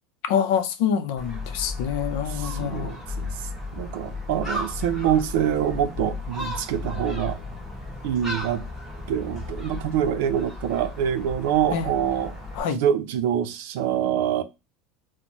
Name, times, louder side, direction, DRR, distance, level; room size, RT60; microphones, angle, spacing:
voice 1, 0.3-2.9 11.7-11.9 12.5-12.8, left 8 dB, 80° left, 0.6 m, -26 dB
Gull seagull, 1.2-12.6, left 2 dB, 5° left, 1.4 m, -34 dB
voice 2, 2.3-3.4 3.7-7.4 8.0-8.7 9.1-12.4 12.7-14.4, right 9 dB, 80° right, 0.5 m, -25 dB
4.3 x 2.1 x 3.0 m
cardioid pair, 170°, 0 cm